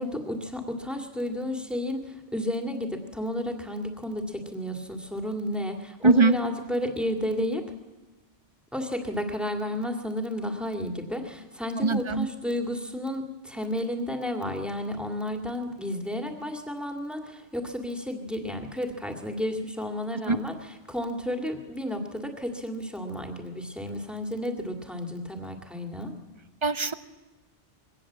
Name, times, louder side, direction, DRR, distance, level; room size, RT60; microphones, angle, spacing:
voice 1, 0.0-7.6 8.7-26.1, left 1 dB, ahead, 3 dB, 2.1 m, -32 dB
voice 2, 6.0-6.3 11.8-12.3 20.3-20.4 26.6-26.9, right 3 dB, 30° right, 13 dB, 0.7 m, -21 dB
22.0 x 17.5 x 7.4 m, 1.1 s
omnidirectional pair, 1.1 m